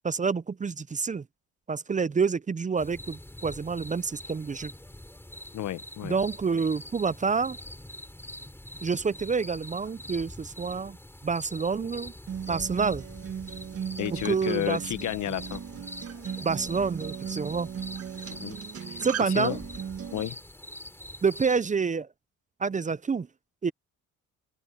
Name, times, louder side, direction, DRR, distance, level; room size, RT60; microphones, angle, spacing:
voice 1, 0.0-1.2 1.7-4.7 6.0-7.6 8.8-11.0 11.2-12.1 12.5-13.0 14.2-14.8 16.4-17.7 19.0-19.6 21.2-22.1 22.6-23.3 23.6-23.7, right 5 dB, 25° right, 0.6 m, -28 dB
sound 1, 2.8-21.6, left 1 dB, 5° left, 6.2 m, -44 dB
voice 2, 5.5-6.2 14.0-15.6 18.3-18.6 18.9-19.0 19.3-19.6 20.1-20.4, left 12 dB, 70° left, 1.1 m, -31 dB
Acoustic guitar, 12.3-20.3, right 8 dB, 50° right, 1.9 m, -38 dB
open air
cardioid pair, 90°, 30 cm